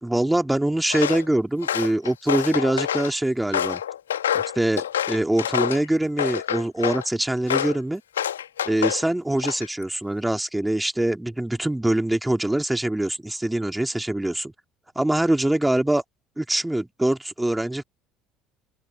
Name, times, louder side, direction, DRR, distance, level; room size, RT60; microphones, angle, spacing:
voice 1, 0.0-3.8 4.3-8.0 8.6-14.5 14.9-16.0 16.4-17.8, right 1 dB, 5° right, 3.1 m, -24 dB
Walk footsteps, 0.9-1.2 1.6-3.1 3.5-5.8 6.2-7.1 7.5-7.8 8.2-9.0 9.4-9.8, left 10 dB, 80° left, 1.5 m, -26 dB
open air
figure-of-eight pair, 60°, 0 cm